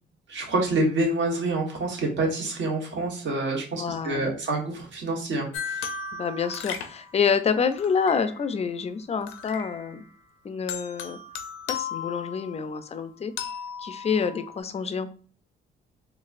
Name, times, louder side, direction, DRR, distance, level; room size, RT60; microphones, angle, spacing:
voice 1, 0.3-5.9, right 2 dB, 65° right, 0 dB, 1.3 m, -27 dB
voice 2, 3.8-4.3 6.1-10.1 10.4-11.2 11.7-13.3 13.8-15.1, left 6 dB, 30° left, 11 dB, 0.4 m, -27 dB
sound 1, 5.5-8.6 9.2-10.2 10.7-12.9 13.4-14.6, left 6 dB, 85° left, 0.5 m, -36 dB
4.0 x 2.3 x 2.5 m, 0.41 s
cardioid pair, 90°, 20 cm